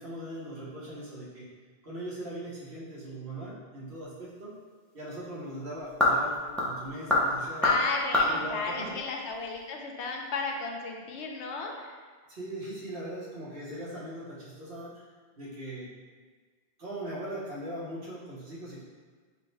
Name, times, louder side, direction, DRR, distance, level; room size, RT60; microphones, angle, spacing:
voice 1, 0.0-1.5 1.8-4.5 4.9-7.8 8.2-9.0 12.3-15.0 15.4-15.9 16.8-18.8, right 1 dB, 60° right, -7 dB, 1.2 m, -40 dB
sound 1, 3.9-9.7, left 1 dB, ahead, 0.4 m, -29 dB
voice 2, 7.6-12.0, left 3 dB, 80° left, 1 dB, 0.9 m, -33 dB
5.4 x 2.1 x 3.2 m, 1.5 s
omnidirectional pair, 1.2 m